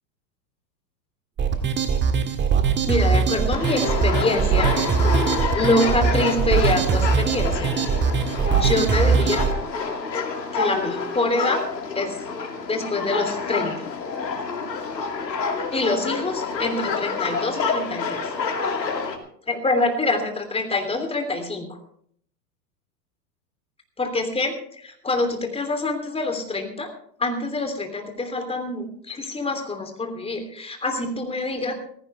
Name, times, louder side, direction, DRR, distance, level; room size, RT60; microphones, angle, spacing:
sound 1, 1.4-9.5, right 6 dB, 20° right, 1.7 m, -21 dB
voice 1, 2.9-4.8 5.5-8.0 8.5-9.5 10.5-11.7 11.9-12.2 12.7-13.7 15.7-18.3 19.5-21.8 24.0-26.9 27.2-31.7, left 2 dB, 10° left, 5 dB, 3.2 m, -25 dB
sound 2, 3.5-19.2, left 4 dB, 90° left, 2.7 m, -28 dB
17.5 x 16.0 x 3.4 m, 0.62 s
hypercardioid pair, 105°, 49 cm